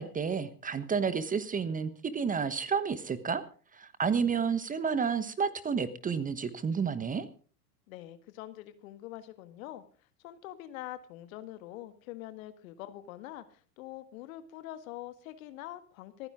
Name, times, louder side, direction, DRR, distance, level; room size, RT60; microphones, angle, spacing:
voice 1, 0.0-3.4 3.7-7.3, right 6 dB, 15° right, 14 dB, 1.2 m, -30 dB
voice 2, 7.9-9.8 10.2-16.3, left 14 dB, 55° left, 12 dB, 1.8 m, -44 dB
27.0 x 9.9 x 3.7 m, 0.39 s
figure-of-eight pair, 90°, 49 cm